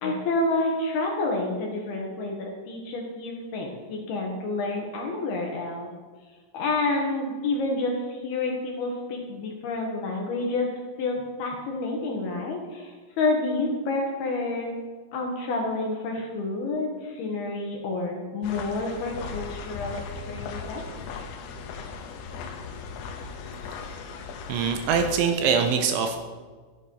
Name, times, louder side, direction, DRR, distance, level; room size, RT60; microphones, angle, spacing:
voice 1, 0.0-5.9 6.5-10.7 11.0-14.7 15.1-20.8, left 2 dB, 65° left, 0 dB, 2.9 m, -29 dB
sound 1, 18.4-25.2, left 5 dB, 85° left, 3.7 m, -38 dB
voice 2, 24.5-26.2, right 6 dB, 75° right, 5 dB, 3.0 m, -23 dB
12.5 x 10.5 x 5.6 m, 1.4 s
omnidirectional pair, 5.8 m